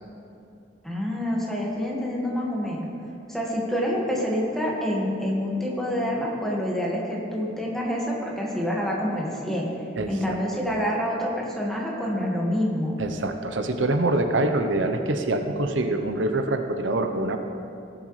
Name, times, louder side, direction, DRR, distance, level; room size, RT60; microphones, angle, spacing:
voice 1, 0.8-2.9 3.3-9.7 10.1-13.0, equal, ahead, -3 dB, 1.7 m, -27 dB
voice 2, 10.0-10.4 13.0-17.4, right 2 dB, 90° right, 6 dB, 0.8 m, -25 dB
17.0 x 7.8 x 3.2 m, 2.7 s
head